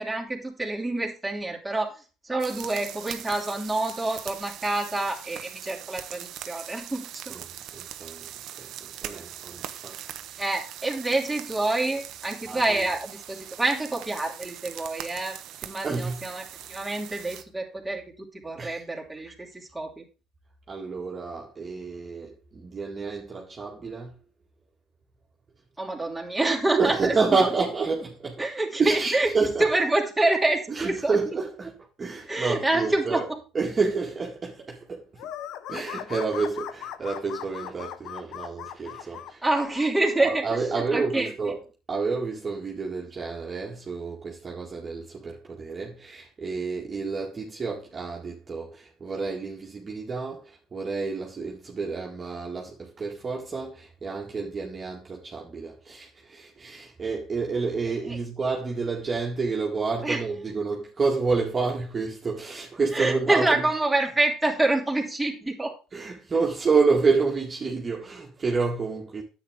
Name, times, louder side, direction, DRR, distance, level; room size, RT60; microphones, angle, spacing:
voice 1, 0.0-7.3 10.4-16.4 16.7-20.0 25.8-27.5 28.4-29.3 29.6-31.2 32.3-33.4 39.4-41.3 60.0-60.2 62.9-65.7, right 2 dB, 5° right, 3.0 m, -27 dB
sound 1, 2.4-17.4, right 11 dB, 65° right, 0.9 m, -41 dB
voice 2, 7.7-10.4 12.4-12.9 15.8-16.4 18.6-18.8 20.7-24.1 26.8-28.4 28.8-29.7 30.7-33.3 33.5-35.3 35.7-39.4 40.2-41.6 41.9-63.6 65.9-69.2, right 4 dB, 30° right, 2.0 m, -29 dB
sound 2, 35.2-39.9, left 11 dB, 65° left, 0.7 m, -38 dB
9.8 x 8.2 x 3.7 m
supercardioid pair, 80°, 0 cm